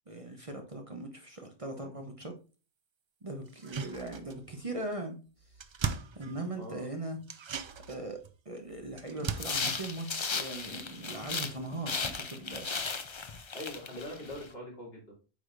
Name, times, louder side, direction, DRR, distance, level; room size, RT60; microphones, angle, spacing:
voice 1, 0.1-2.4 3.2-5.2 6.1-7.2 7.9-8.2 8.4-12.7, right 2 dB, 35° right, 0.9 m, -39 dB
sound 1, 3.5-4.6 4.9-5.0 5.3-6.8 7.2-11.0 11.3-11.4, right 6 dB, 50° right, 0.3 m, -40 dB
sound 2, 9.3-11.6 11.9-14.5, left 5 dB, 35° left, 0.5 m, -36 dB
voice 2, 13.3-15.1, left 1 dB, 65° left, 3.2 m, -43 dB
8.2 x 4.9 x 2.5 m
omnidirectional pair, 1.1 m